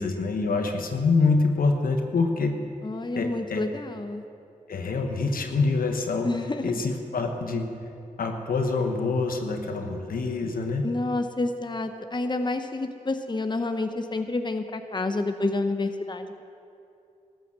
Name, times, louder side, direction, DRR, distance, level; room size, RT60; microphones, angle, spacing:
voice 1, 0.0-2.6 3.1-3.6 4.7-6.3 6.6-7.7 8.2-10.9, left 3 dB, 80° left, 4 dB, 1.3 m, -25 dB
voice 2, 2.8-4.2 6.2-6.7 10.8-16.4, left 2 dB, 30° left, 7 dB, 0.9 m, -29 dB
13.5 x 9.2 x 7.5 m, 2.6 s
cardioid pair, 40°, 15 cm